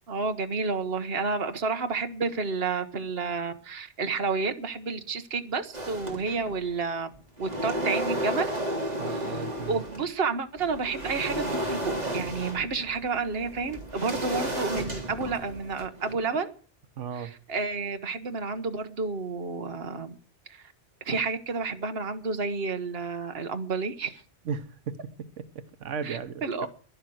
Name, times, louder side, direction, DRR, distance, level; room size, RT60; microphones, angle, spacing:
voice 1, 0.1-7.1 7.4-8.5 9.1-16.5 17.1-20.1 20.5-20.6 21.0-24.2 26.0-26.7, right 4 dB, 55° right, 1.4 m, -30 dB
sound 1, 5.7-6.7 7.1-10.1 10.6-16.1, right 1 dB, 35° right, 3.3 m, -33 dB
voice 2, 9.0-9.9 17.0-17.3 24.5-25.0 25.4-26.7, right 6 dB, 90° right, 1.3 m, -35 dB
11.5 x 11.0 x 7.8 m
omnidirectional pair, 1.2 m